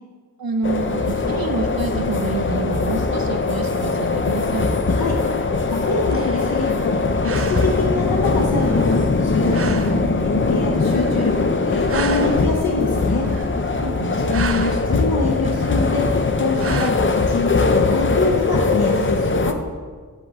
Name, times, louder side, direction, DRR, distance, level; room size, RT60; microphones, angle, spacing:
voice 1, 0.4-4.7 13.7-14.4, right 4 dB, 80° right, 4 dB, 0.9 m, -28 dB
sound 1, 0.6-19.5, left 3 dB, 35° left, 0.6 m, -21 dB
voice 2, 4.9-5.2 5.7-13.3 14.2-16.1 16.3-19.6, left 3 dB, 85° left, 0 dB, 0.8 m, -25 dB
sound 2, 5.7-7.0 7.2-8.0 8.6-9.2 9.5-10.1 10.8-11.6 11.9-12.6 13.1-13.8 14.1-14.9 15.5-16.1 16.6-16.9, right 5 dB, 40° right, 0.4 m, -33 dB
8.2 x 3.7 x 6.8 m, 1.5 s
wide cardioid pair, 60°, 35 cm